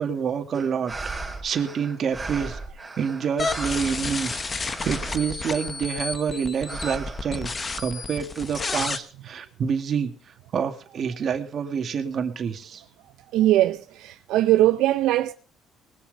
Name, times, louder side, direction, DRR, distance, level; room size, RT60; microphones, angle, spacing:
voice 1, 0.0-2.6 3.0-7.5 7.8-10.1 10.5-12.8, right 7 dB, 50° right, 2.1 m, -28 dB
sound 1, 0.5-6.1 6.6-8.1, right 3 dB, 10° right, 4.0 m, -37 dB
sound 2, 3.4-9.0, left 4 dB, 30° left, 1.2 m, -31 dB
voice 2, 13.3-15.3, right 14 dB, 85° right, 0.5 m, -20 dB
20.5 x 7.4 x 5.4 m
cardioid pair, 105°, 0 cm